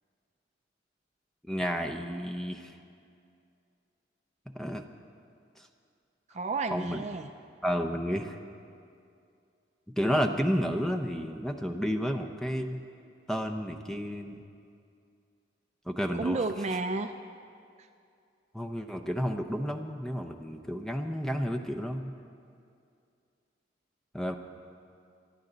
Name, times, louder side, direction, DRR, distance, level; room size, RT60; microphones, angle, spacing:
voice 1, 1.4-2.7 4.5-4.9 5.6-5.7 6.7-7.0 7.6-8.4 10.0-12.8 13.3-14.4 15.9-16.4 18.5-22.1 24.1-24.4, equal, ahead, 4 dB, 0.7 m, -31 dB
voice 2, 6.3-7.3 16.2-17.1, right 3 dB, 35° right, 8 dB, 0.4 m, -31 dB
24.5 x 11.0 x 4.0 m, 2.4 s
head